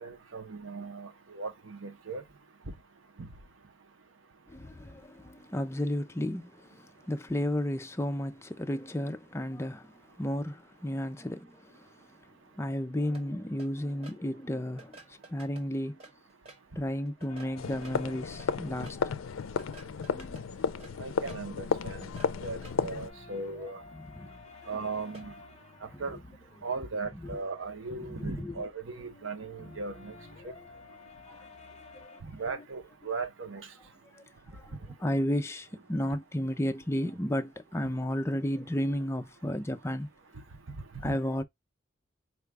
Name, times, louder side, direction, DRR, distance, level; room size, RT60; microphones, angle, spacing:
voice 1, 0.0-2.2 3.2-3.3 21.0-22.1 22.4-23.8 24.7-25.3 26.0-26.2 26.6-30.1 30.4-30.5 32.2-33.7 40.9-41.2, right 4 dB, 75° right, 0.8 m, -37 dB
voice 2, 4.5-11.9 12.6-16.0 16.8-19.1 20.1-20.4 24.2-24.3 24.6-24.7 25.9-26.0 27.3-27.4 28.2-28.5 31.3-31.5 31.9-32.1 34.1-34.2 34.5-34.7 35.0-40.1 41.0-41.4, equal, 15° left, 0.4 m, -33 dB
sound 1, 13.1-14.2 14.8-16.6 17.1-19.0 19.6-21.4 21.9-22.7 25.1-25.3, right 3 dB, 30° right, 1.2 m, -52 dB
sound 2, 17.3-19.7 20.1-21.5 21.8-32.2, left 3 dB, 35° left, 0.8 m, -53 dB
sound 3, 17.6-23.1, left 6 dB, 85° left, 0.4 m, -33 dB
4.8 x 2.3 x 3.3 m
head